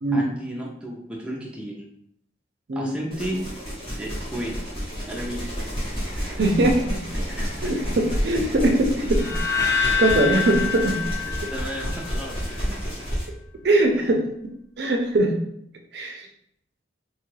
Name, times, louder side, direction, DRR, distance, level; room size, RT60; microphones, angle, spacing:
voice 1, 0.1-1.8 2.8-3.5 4.0-4.6 5.1-5.6 7.4-7.7 9.0-9.1 11.5-12.8 13.9-14.1, equal, 5° right, -3 dB, 0.5 m, -33 dB
sound 1, 3.1-13.3, equal, 30° left, 1.0 m, -30 dB
voice 2, 6.2-7.0 7.6-7.7 8.2-8.9 9.8-11.0 13.6-14.2 14.8-15.3 15.9-16.3, right 2 dB, 60° right, 3 dB, 0.5 m, -21 dB
sound 2, 9.1-12.3, left 6 dB, 55° left, 0.8 m, -26 dB
2.9 x 2.3 x 3.1 m, 0.73 s
head